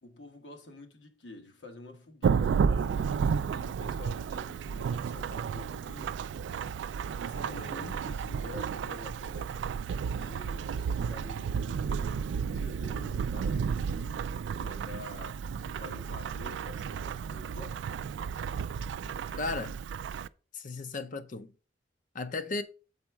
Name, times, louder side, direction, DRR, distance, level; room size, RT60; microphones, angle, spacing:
voice 1, 0.0-6.2 7.2-9.6 10.2-14.3 14.5-17.8, left 2 dB, 75° left, 1.3 m, -48 dB
Thunderstorm / Rain, 2.2-20.3, right 6 dB, 80° right, 0.3 m, -32 dB
voice 2, 7.5-8.0 19.4-19.7 20.5-21.5 22.1-22.6, left 3 dB, 45° left, 0.6 m, -35 dB
7.2 x 4.2 x 4.5 m
head